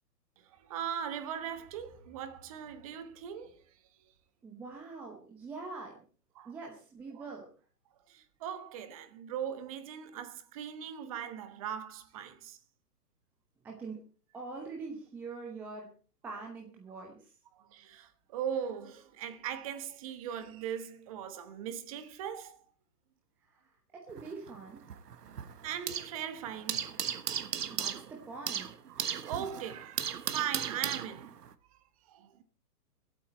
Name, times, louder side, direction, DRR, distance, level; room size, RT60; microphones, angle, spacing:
voice 1, 0.4-3.6 4.0-4.1 6.4-6.5 8.1-12.6 17.5-22.6 25.2-27.0 28.9-31.4 31.7-31.8 32.1-32.4, right 9 dB, 20° right, 1.1 m, -39 dB
voice 2, 4.4-6.0 6.4-7.5 13.6-14.0 14.3-15.9 16.2-17.3 23.4-24.8 27.7-28.7, right 4 dB, 5° right, 0.8 m, -44 dB
sound 1, 24.1-26.2 26.5-31.5, right 8 dB, 75° right, 1.4 m, -36 dB
24.0 x 8.4 x 4.3 m
hypercardioid pair, 155°, 48 cm